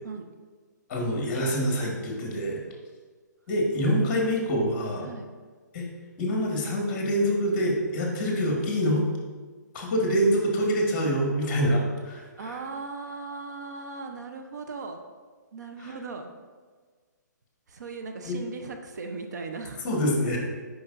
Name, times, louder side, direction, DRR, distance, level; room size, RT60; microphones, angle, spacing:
voice 1, 0.9-2.6 3.5-5.1 5.7-5.9 6.2-9.0 9.7-12.6 18.3-18.4 19.8-20.4, equal, 30° left, -1 dB, 1.5 m, -25 dB
voice 2, 3.7-4.3 5.0-5.3 12.4-15.0 15.5-16.3 17.7-19.8, right 4 dB, 65° right, 4 dB, 0.8 m, -38 dB
7.8 x 5.4 x 2.5 m, 1.5 s
hypercardioid pair, 155°, 10 cm